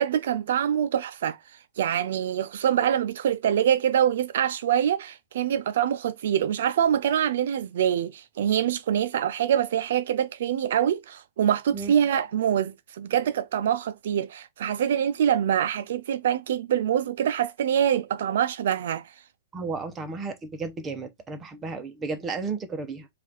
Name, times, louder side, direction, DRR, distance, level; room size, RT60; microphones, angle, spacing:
voice 1, 0.0-19.1, right 9 dB, 60° right, 0.3 m, -25 dB
voice 2, 19.5-23.1, right 4 dB, 10° right, 0.7 m, -33 dB
4.8 x 2.4 x 4.1 m
hypercardioid pair, 165°, 0 cm